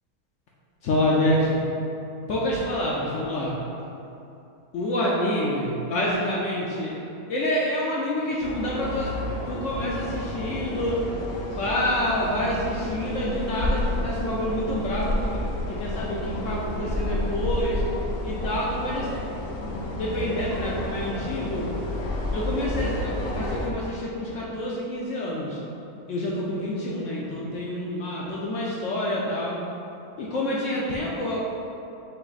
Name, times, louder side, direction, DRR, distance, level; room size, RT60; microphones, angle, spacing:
voice 1, 0.8-1.6 2.3-3.5 4.7-6.9 7.3-9.1 9.5-10.9 11.6-15.1 15.8-17.8 18.2-19.1 19.6-21.7 22.3-25.6 26.1-29.6 30.2-31.4, left 1 dB, 70° left, -5 dB, 0.8 m, -27 dB
sound 1, 8.4-23.7, left 1 dB, 90° left, 0.5 m, -30 dB
5.6 x 2.1 x 3.9 m, 2.8 s
omnidirectional pair, 1.6 m